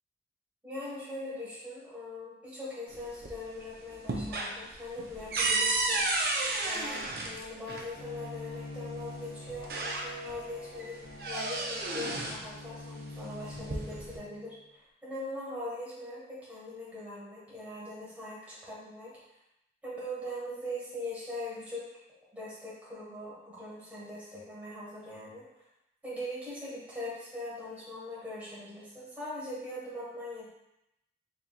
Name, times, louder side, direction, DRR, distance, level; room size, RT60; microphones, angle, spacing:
voice 1, 0.6-6.0 6.6-11.0 11.2-19.1 19.8-21.8 22.3-25.4 26.0-30.5, left 1 dB, 10° right, -9 dB, 1.5 m, -41 dB
sound 1, 2.9-3.6 3.9-7.9 9.0-9.1 9.5-10.4 10.8-12.5 13.4-14.2, right 2 dB, 55° right, 0.5 m, -32 dB
Bowed string instrument, 8.0-14.6, left 2 dB, 50° left, 0.5 m, -46 dB
4.4 x 3.6 x 2.4 m, 0.85 s
head